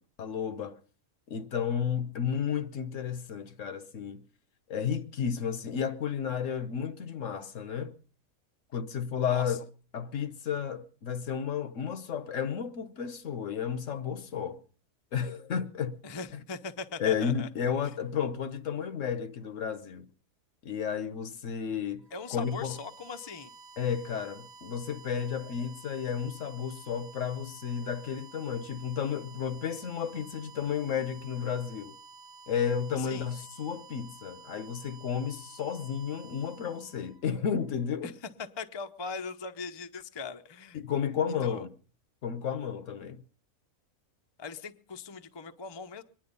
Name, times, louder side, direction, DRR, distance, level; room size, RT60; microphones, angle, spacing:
voice 1, 0.2-0.8 1.3-4.2 4.7-7.9 8.7-9.6 9.9-14.6 15.1-16.0 17.0-20.1 20.6-22.0 22.3-22.8 23.8-32.0 32.5-38.1 40.7-41.7 42.2-43.2, left 7 dB, 65° left, 1.2 m, -32 dB
voice 2, 16.0-17.5 22.1-23.5 32.9-33.3 38.0-38.1 38.6-40.8 41.4-41.7 44.4-46.0, left 4 dB, 25° left, 0.6 m, -40 dB
sound 1, 22.0-37.8, right 3 dB, 75° right, 1.4 m, -52 dB
23.0 x 10.5 x 5.3 m
omnidirectional pair, 1.5 m